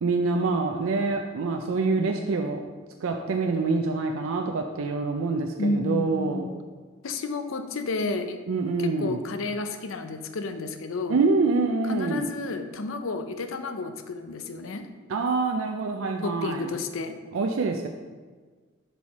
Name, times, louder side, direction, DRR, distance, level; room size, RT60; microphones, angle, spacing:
voice 1, 0.0-2.6 3.0-6.5 8.5-9.2 11.1-12.3 15.1-16.7 17.3-17.9, right 3 dB, 75° right, 3 dB, 0.4 m, -26 dB
voice 2, 5.6-6.6 7.0-8.4 8.8-11.2 11.9-14.9 16.2-17.2, left 3 dB, 75° left, 8 dB, 0.5 m, -31 dB
5.5 x 4.7 x 4.1 m, 1.4 s
head